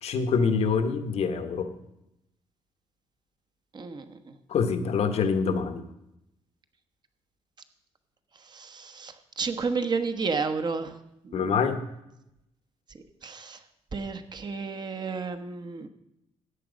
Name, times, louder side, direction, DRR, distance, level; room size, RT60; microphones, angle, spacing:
voice 1, 0.0-1.7 4.5-5.8 11.3-11.8, left 5 dB, 65° left, 9 dB, 1.2 m, -25 dB
voice 2, 3.7-4.4 8.3-11.0 11.2-11.6 13.2-13.6 13.9-15.9, right 4 dB, 40° right, 9 dB, 1.1 m, -32 dB
13.5 x 8.7 x 5.2 m, 0.86 s
cardioid pair, 100°, 12 cm